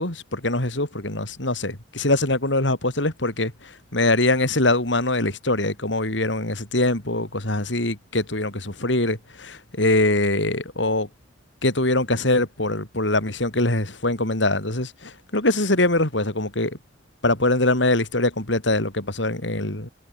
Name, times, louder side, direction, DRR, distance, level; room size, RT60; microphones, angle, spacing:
voice 1, 0.0-11.1 11.6-16.8 17.2-19.9, left 2 dB, 65° left, 4.1 m, -23 dB
head